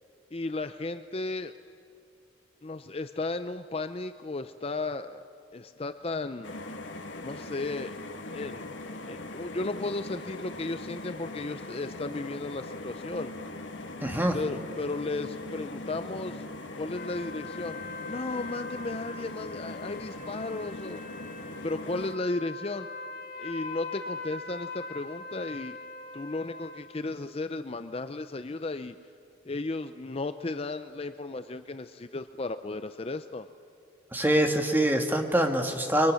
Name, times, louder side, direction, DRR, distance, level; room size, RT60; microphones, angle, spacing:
voice 1, 0.3-1.5 2.6-5.2 5.5-6.5 7.2-8.1 8.3-13.3 14.3-16.5 16.8-17.8 18.1-21.0 21.6-22.9 23.4-25.8 26.1-28.9 29.4-33.5, left 2 dB, 30° left, 10 dB, 0.5 m, -34 dB
sound 1, 6.4-22.2, left 2 dB, 70° left, 1.6 m, -40 dB
voice 2, 14.0-14.4 34.1-36.1, right 1 dB, 10° right, 4 dB, 1.6 m, -24 dB
sound 2, 16.9-26.8, left 3 dB, 50° left, 2.9 m, -42 dB
30.0 x 23.0 x 6.4 m, 2.7 s
head